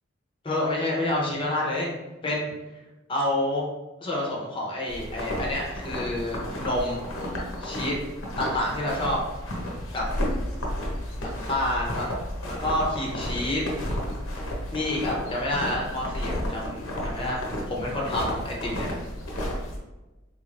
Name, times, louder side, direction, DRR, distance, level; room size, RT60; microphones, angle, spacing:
voice 1, 0.4-1.9 2.2-2.5 3.1-3.7 4.0-7.0 7.6-8.0 8.4-9.2 9.9-10.0 11.1-12.1 12.4-13.6 14.7-18.9, left 1 dB, 25° left, -3 dB, 0.7 m, -28 dB
sound 1, 4.9-19.8, equal, 85° left, 0.8 m, -32 dB
3.6 x 3.1 x 2.5 m, 1.1 s
head